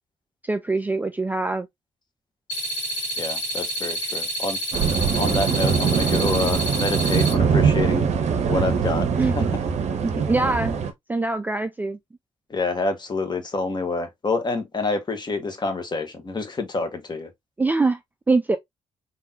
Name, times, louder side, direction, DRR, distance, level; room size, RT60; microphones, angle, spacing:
voice 1, 0.4-1.7 9.2-9.4 10.0-10.8 11.1-12.0 17.6-18.0 18.3-18.6, right 3 dB, 10° right, 0.4 m, -23 dB
sound 1, 2.5-7.3, right 1 dB, 85° left, 1.5 m, -29 dB
voice 2, 3.2-4.6 5.1-8.1 8.5-9.1 9.3-9.4 12.5-17.3, left 3 dB, 30° left, 1.2 m, -27 dB
sound 2, 4.7-10.9, right 6 dB, 50° right, 0.7 m, -22 dB
3.7 x 2.6 x 2.7 m
figure-of-eight pair, 45°, 15 cm